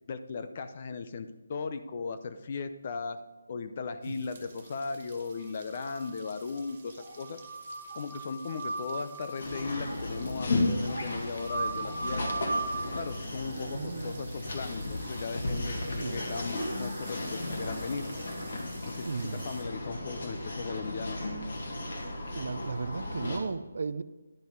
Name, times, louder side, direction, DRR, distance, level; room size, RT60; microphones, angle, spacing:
voice 1, 0.1-3.2 3.5-7.4 7.9-12.2 12.9-18.1 18.9-21.2, left 4 dB, 30° left, 10 dB, 0.5 m, -37 dB
sound 1, 4.0-19.6, right 4 dB, 30° right, 1.9 m, -52 dB
sound 2, 5.4-6.4 6.7-6.8 7.0-13.0, right 3 dB, 85° left, 3.3 m, -37 dB
sound 3, 9.4-23.4, left 2 dB, 50° left, 1.8 m, -35 dB
voice 2, 13.7-14.3 16.0-16.2 19.0-19.5 22.3-24.0, right 4 dB, 55° right, 13 dB, 0.5 m, -35 dB
11.0 x 5.5 x 5.0 m, 1.2 s
hypercardioid pair, 175°, 0 cm